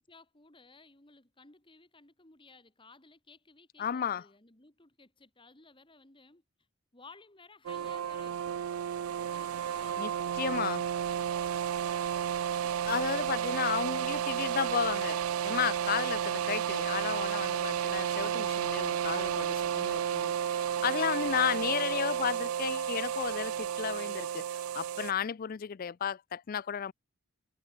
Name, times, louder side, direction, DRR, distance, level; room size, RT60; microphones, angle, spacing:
voice 1, 0.0-6.4 6.9-8.4 9.2-11.5, left 3 dB, 25° left, 2.2 m, -57 dB
voice 2, 3.8-4.2 10.0-10.1 10.4-10.8 12.6-26.9, left 8 dB, 40° left, 0.4 m, -33 dB
sound 1, 7.7-25.1, right 9 dB, 85° right, 0.4 m, -32 dB
head